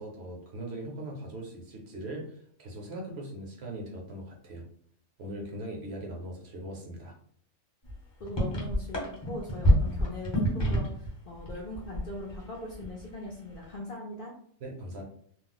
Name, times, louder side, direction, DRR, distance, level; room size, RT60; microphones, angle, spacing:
voice 1, 0.0-4.7 5.2-7.2 14.6-15.0, right 1 dB, 60° right, 0 dB, 0.8 m, -40 dB
sound 1, 7.8-7.9 8.2-11.1 11.4-12.4 12.7-13.0, equal, 25° left, 0.7 m, -26 dB
voice 2, 8.2-14.3, left 1 dB, 60° left, -2 dB, 0.6 m, -40 dB
2.4 x 2.0 x 3.8 m, 0.62 s
omnidirectional pair, 1.4 m